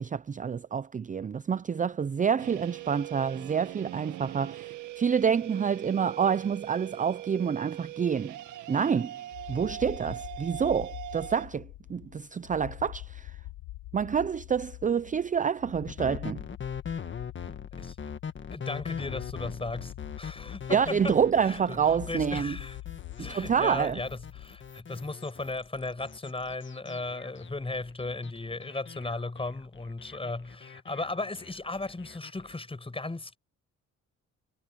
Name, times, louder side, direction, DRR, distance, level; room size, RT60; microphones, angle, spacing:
voice 1, 0.0-8.3 8.7-9.1 9.5-13.3 13.9-16.4 20.7-22.5 23.2-24.0, right 7 dB, 25° right, 0.5 m, -28 dB
sound 1, 2.4-11.5, right 14 dB, 90° right, 2.0 m, -41 dB
sound 2, 9.3-24.9, left 16 dB, 85° left, 1.2 m, -44 dB
sound 3, 15.9-32.5, left 7 dB, 40° left, 1.7 m, -42 dB
voice 2, 18.5-22.8 23.2-33.4, left 2 dB, 20° left, 7.7 m, -36 dB
cardioid pair, 90°, 30 cm